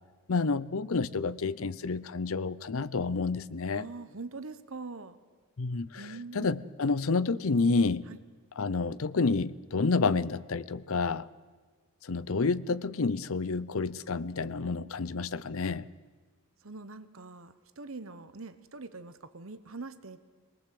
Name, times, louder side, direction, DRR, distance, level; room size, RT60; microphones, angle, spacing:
voice 1, 0.3-3.9 5.6-6.1 6.3-8.1 8.6-11.3 12.0-15.9, left 4 dB, 70° left, 0.6 m, -29 dB
voice 2, 3.7-5.2 6.0-6.8 8.1-8.2 16.6-20.2, right 3 dB, 65° right, 1.1 m, -43 dB
24.0 x 19.0 x 7.7 m
head